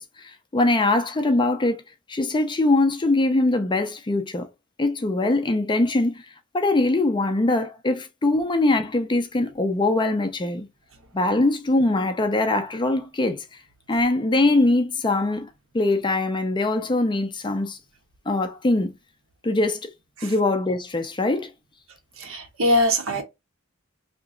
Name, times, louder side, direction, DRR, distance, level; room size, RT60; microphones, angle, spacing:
voice 1, 0.0-1.8 2.1-4.5 4.8-6.2 6.5-10.7 11.1-13.4 13.9-17.8 18.3-18.9 19.4-19.8 20.2-21.5, left 2 dB, 20° left, 0.4 m, -22 dB
voice 2, 22.2-23.2, left 1 dB, 65° right, 0.9 m, -22 dB
2.9 x 2.4 x 3.7 m
head